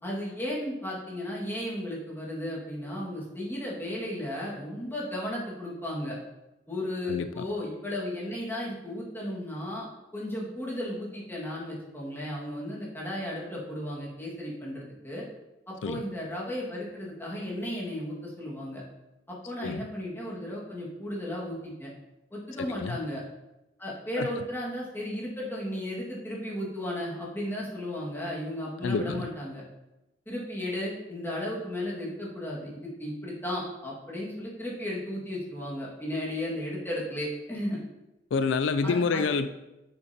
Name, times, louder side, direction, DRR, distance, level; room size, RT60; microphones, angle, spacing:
voice 1, 0.0-6.2 6.7-9.9 10.1-15.2 15.7-18.8 19.3-21.9 22.3-23.2 23.8-29.6 30.3-37.8 38.8-39.2, left 1 dB, 10° left, -5 dB, 1.8 m, -34 dB
voice 2, 7.1-7.4 15.8-16.0 19.6-19.9 22.7-23.0 24.2-24.5 28.8-29.3 38.3-39.5, left 4 dB, 90° left, 11 dB, 0.4 m, -28 dB
8.5 x 6.8 x 2.8 m, 0.97 s
head